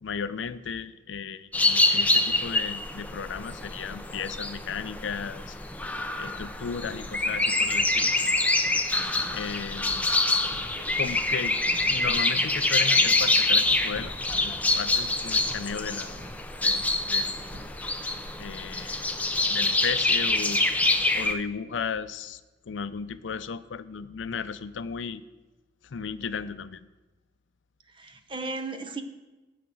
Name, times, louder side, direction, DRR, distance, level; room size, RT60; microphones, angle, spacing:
voice 1, 0.0-5.6 6.2-8.1 9.3-10.1 11.0-11.6 11.9-16.2 16.6-17.4 18.4-20.6 21.1-22.4 22.7-25.2 25.8-26.8, left 6 dB, 90° left, 14 dB, 0.5 m, -35 dB
sound 1, 1.5-21.3, left 2 dB, 10° left, 0.6 m, -26 dB
sound 2, 9.2-17.6, equal, 90° right, 2.1 m, -46 dB
voice 2, 27.9-29.0, right 3 dB, 25° right, 8 dB, 0.8 m, -36 dB
9.9 x 5.7 x 7.8 m, 1.1 s
head